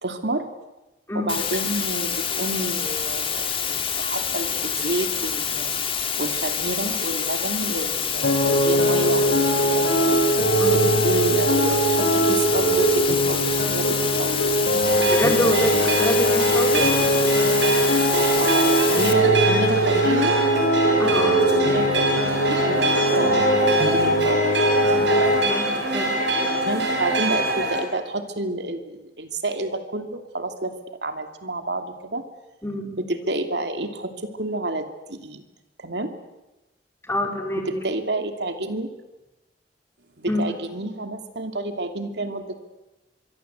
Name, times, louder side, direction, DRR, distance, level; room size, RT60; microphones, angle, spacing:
voice 1, 0.0-0.5 1.1-5.8 6.2-10.2 10.7-14.4 18.4-20.4 20.8-24.4 26.6-30.7 31.0-32.2 33.0-35.4 35.8-36.1 37.6-38.9 40.2-42.6, right 2 dB, 75° right, 7 dB, 2.8 m, -29 dB
sound 1, 1.3-19.1, left 7 dB, 30° left, 2.7 m, -27 dB
sound 2, 8.2-25.4, right 1 dB, 85° left, 5.5 m, -21 dB
sound 3, 14.8-27.8, right 1 dB, 90° right, 6.9 m, -24 dB
voice 2, 15.1-16.9 21.0-21.4 25.4-26.1 32.6-32.9 37.1-37.8 40.3-40.4, left 1 dB, 15° left, 2 dB, 4.5 m, -26 dB
25.5 x 23.5 x 8.2 m, 1.0 s
head